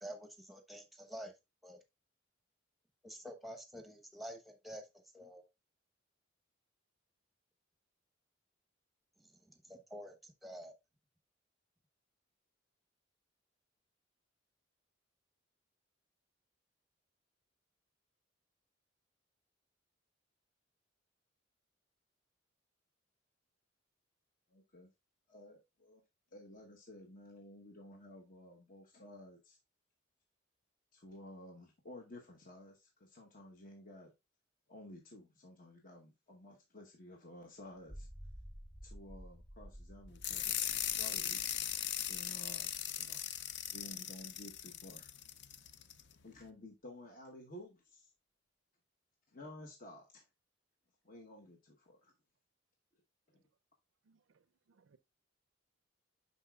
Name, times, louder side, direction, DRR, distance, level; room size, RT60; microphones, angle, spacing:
voice 1, 0.0-1.3 1.6-1.8 3.0-4.9 5.1-5.5 9.2-10.7, equal, ahead, 0.9 m, -49 dB
voice 2, 24.5-24.9 25.3-26.0 26.3-29.6 30.9-34.1 34.7-38.1 38.8-40.6 40.9-41.4 42.1-43.2 43.7-45.1 46.2-48.1 49.3-50.3 51.0-52.1 53.3-53.4, left 1 dB, 45° left, 1.0 m, -53 dB
sound 1, 37.8-44.2, equal, 25° left, 1.3 m, -54 dB
sound 2, 40.2-46.0, left 10 dB, 60° left, 0.5 m, -39 dB
voice 3, 54.0-55.0, right 4 dB, 75° right, 0.5 m, -71 dB
11.0 x 4.1 x 2.3 m
head